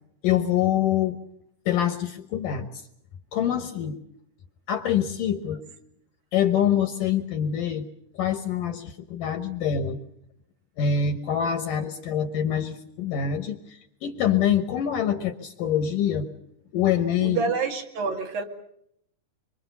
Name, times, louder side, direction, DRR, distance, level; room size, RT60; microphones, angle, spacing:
voice 1, 0.2-1.2 1.7-2.7 3.3-4.0 4.7-5.6 6.3-7.9 8.1-10.0 10.8-16.3 16.7-17.5, left 9 dB, 65° left, 2.3 m, -25 dB
voice 2, 17.2-18.4, right 5 dB, 60° right, 3.8 m, -27 dB
25.5 x 24.5 x 6.9 m
omnidirectional pair, 4.8 m